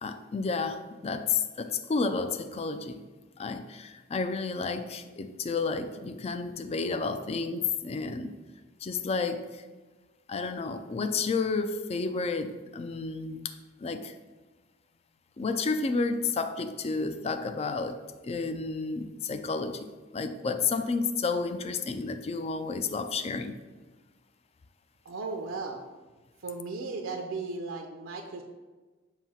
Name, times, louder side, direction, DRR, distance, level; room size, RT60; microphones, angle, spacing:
voice 1, 0.0-3.0 3.4-8.4 8.8-9.7 10.3-13.5 13.8-14.1 15.4-23.6, left 4 dB, 30° left, 9 dB, 0.4 m, -31 dB
voice 2, 25.0-25.8 26.4-28.4, right 3 dB, 70° right, 3 dB, 0.6 m, -36 dB
7.3 x 2.7 x 5.6 m, 1.3 s
head